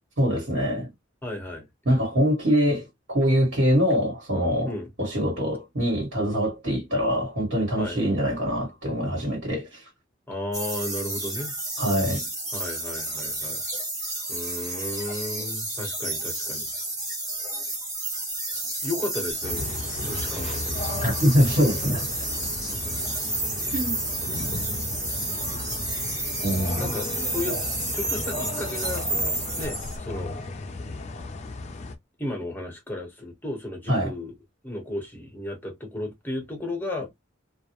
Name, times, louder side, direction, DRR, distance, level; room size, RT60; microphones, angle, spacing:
voice 1, 0.2-0.9 1.8-4.7 5.0-9.8 11.8-12.2 21.0-22.0 23.7-24.0 26.4-26.9 33.9-34.1, equal, 65° right, 1.3 m, -24 dB
voice 2, 1.2-1.7 4.6-4.9 7.8-8.0 10.3-11.5 12.5-13.6 14.3-16.7 18.8-20.9 22.7-23.2 26.7-27.6 27.9-30.5 32.2-34.3 34.6-37.2, left 1 dB, 10° left, 0.8 m, -34 dB
sound 1, 10.5-30.0, right 2 dB, 20° right, 0.9 m, -31 dB
sound 2, 19.4-31.9, left 2 dB, 35° left, 0.4 m, -35 dB
2.3 x 2.0 x 2.8 m
head